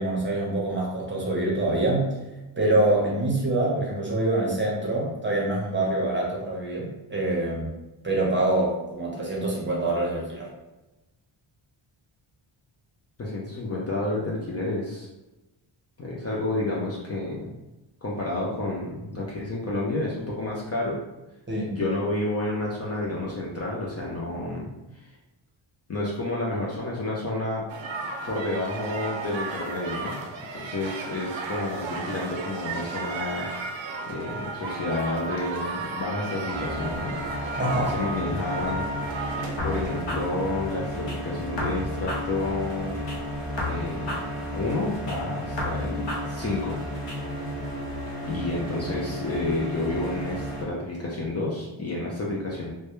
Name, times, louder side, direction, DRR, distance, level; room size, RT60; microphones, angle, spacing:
voice 1, 0.0-2.1 2.6-7.7 8.0-10.5 21.5-21.8 37.6-37.9, right 2 dB, 25° right, -3 dB, 0.7 m, -25 dB
voice 2, 13.2-15.1 16.0-17.5 18.0-21.0 21.7-24.7 24.9-25.2 25.9-27.7 28.3-30.2 30.5-33.5 34.1-37.2 37.7-43.0 43.6-44.2 44.5-46.8 48.2-52.7, left 2 dB, 35° left, -4 dB, 0.4 m, -30 dB
sound 1, 27.7-40.0, right 3 dB, 70° right, 0.5 m, -34 dB
sound 2, 36.5-50.6, equal, ahead, 1.0 m, -33 dB
sound 3, 39.6-41.2 41.6-43.2 43.6-45.2 45.6-47.2, left 1 dB, 60° left, 0.8 m, -34 dB
2.2 x 2.1 x 2.9 m, 1.0 s
wide cardioid pair, 105°, 48 cm